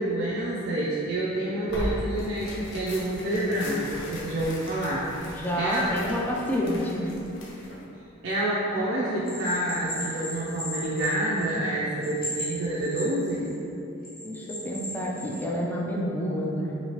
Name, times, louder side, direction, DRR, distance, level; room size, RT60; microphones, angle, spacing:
voice 1, 0.0-5.3 5.6-5.9 8.2-13.5, right 1 dB, 75° right, -7 dB, 0.4 m, -28 dB
Tearing, 1.7-7.8, left 1 dB, 65° left, 0.6 m, -38 dB
voice 2, 5.3-7.0 14.2-16.8, equal, 10° left, -4 dB, 0.3 m, -29 dB
Bell, 9.3-11.7 12.0-13.5 14.0-15.4, equal, 45° left, 1.0 m, -36 dB
2.9 x 2.7 x 3.0 m, 2.8 s
head